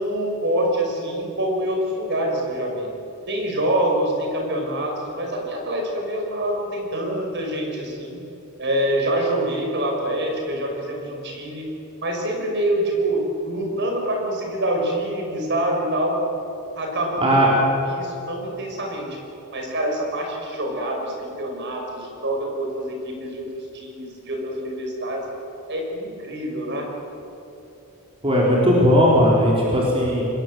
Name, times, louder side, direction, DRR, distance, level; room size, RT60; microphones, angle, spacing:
voice 1, 0.0-2.9 3.3-8.2 8.6-11.7 12.0-16.2 16.8-17.5 17.9-19.2 19.5-25.2 25.7-26.9, right 1 dB, 55° right, 1 dB, 5.7 m, -26 dB
voice 2, 17.2-17.5 28.2-30.2, equal, 25° right, -4 dB, 4.1 m, -17 dB
26.5 x 20.5 x 7.7 m, 3.0 s
head